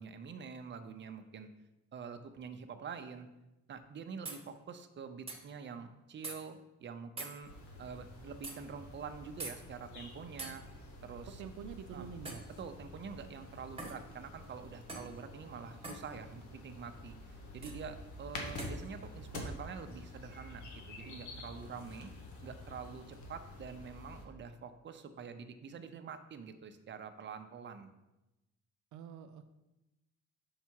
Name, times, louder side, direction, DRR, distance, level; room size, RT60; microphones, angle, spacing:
voice 1, 0.0-1.5 1.9-3.3 3.7-7.5 7.8-10.6 11.0-11.4 11.9-12.1 12.6-22.1 22.4-27.9, right 6 dB, 40° right, 7 dB, 0.6 m, -46 dB
sound 1, 4.2-4.4 5.3-5.4 6.2-6.4 7.2-7.4 8.4-8.6 9.4-9.6 10.4-10.6 12.2-12.5 13.8-14.0 14.9-15.1 15.8-16.0 17.6-17.8 18.6-18.8, right 3 dB, 20° right, 1.2 m, -43 dB
sound 2, 7.4-24.2, left 2 dB, 75° left, 1.3 m, -49 dB
voice 2, 11.4-12.4 28.9-29.5, right 7 dB, 75° right, 8 dB, 0.5 m, -46 dB
5.7 x 4.7 x 4.5 m, 0.97 s
cardioid pair, 90°, 30 cm